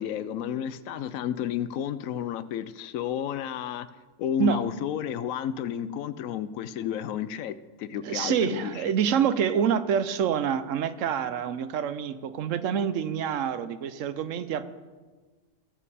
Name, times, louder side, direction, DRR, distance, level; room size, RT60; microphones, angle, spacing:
voice 1, 0.0-3.9 4.2-8.8, left 9 dB, 85° left, 14 dB, 1.0 m, -31 dB
voice 2, 8.0-14.6, right 8 dB, 75° right, 13 dB, 1.0 m, -27 dB
20.0 x 7.2 x 4.2 m, 1.4 s
omnidirectional pair, 1.4 m